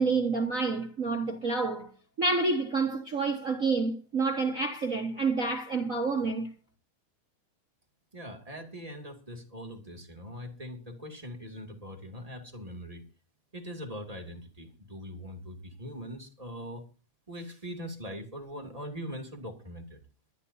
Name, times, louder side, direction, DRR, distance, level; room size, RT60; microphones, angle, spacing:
voice 1, 0.0-1.9 2.2-6.5, right 3 dB, 55° right, 0.8 m, -28 dB
voice 2, 8.1-13.0 13.5-16.9 17.3-20.0, equal, 15° right, 2.2 m, -41 dB
25.5 x 11.5 x 2.7 m
omnidirectional pair, 3.5 m